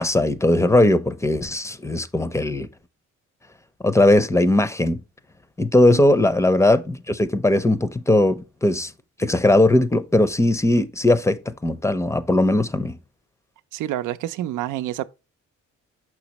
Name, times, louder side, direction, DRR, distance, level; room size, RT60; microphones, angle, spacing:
voice 1, 0.0-2.7 3.8-5.0 5.6-8.9 9.2-13.0, left 1 dB, 10° left, 0.6 m, -19 dB
voice 2, 13.7-15.0, right 13 dB, 85° right, 0.6 m, -28 dB
6.0 x 5.9 x 2.9 m
cardioid pair, 90°, 30 cm